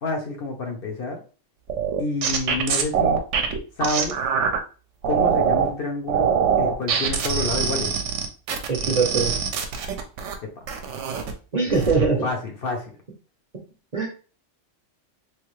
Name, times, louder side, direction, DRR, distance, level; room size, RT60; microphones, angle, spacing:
voice 1, 0.0-1.2 2.0-3.2 3.8-4.2 5.0-7.9 10.8-10.9 11.8-12.9, left 3 dB, 55° left, 2 dB, 0.8 m, -29 dB
sound 1, 1.7-4.6 5.0-5.7 6.1-10.3 10.7-11.3 11.7-12.1, right 7 dB, 75° right, 0.9 m, -23 dB
voice 2, 8.7-9.3 11.5-12.3 13.9-14.1, right 4 dB, 40° right, 0 dB, 0.7 m, -22 dB
3.2 x 2.3 x 3.1 m, 0.36 s
omnidirectional pair, 1.3 m